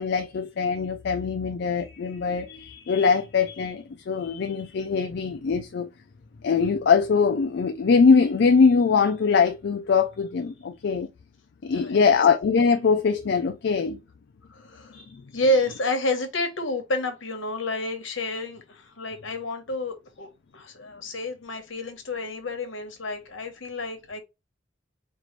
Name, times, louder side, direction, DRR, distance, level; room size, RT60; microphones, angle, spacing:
voice 1, 0.0-5.9 6.4-11.1 11.6-14.0 14.9-15.4, left 5 dB, 60° left, 0.4 m, -22 dB
voice 2, 11.7-12.2 14.5-15.0 15.3-24.2, left 1 dB, 75° left, 1.1 m, -29 dB
4.6 x 2.5 x 3.1 m
head